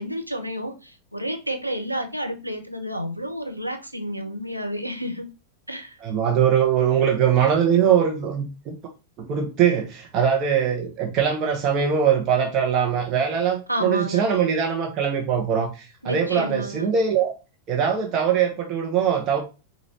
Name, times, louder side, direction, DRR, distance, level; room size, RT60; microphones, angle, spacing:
voice 1, 0.0-5.3 5.7-6.0 13.7-14.3 16.0-16.9, equal, 90° right, 0.6 m, -30 dB
voice 2, 6.0-8.7 9.2-17.3 17.7-19.4, right 8 dB, 35° right, 0.9 m, -22 dB
5.0 x 2.6 x 2.8 m
figure-of-eight pair, 90°, 0 cm